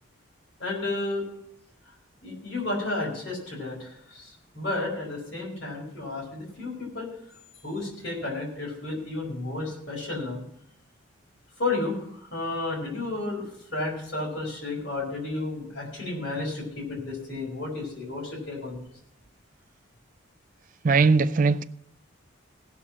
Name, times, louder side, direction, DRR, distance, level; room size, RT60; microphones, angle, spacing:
voice 1, 0.6-1.2 2.2-7.1 7.6-10.4 11.6-18.9, left 2 dB, 55° left, 4.6 m, -32 dB
voice 2, 20.8-21.6, right 4 dB, 40° right, 0.4 m, -20 dB
17.0 x 6.0 x 6.1 m
head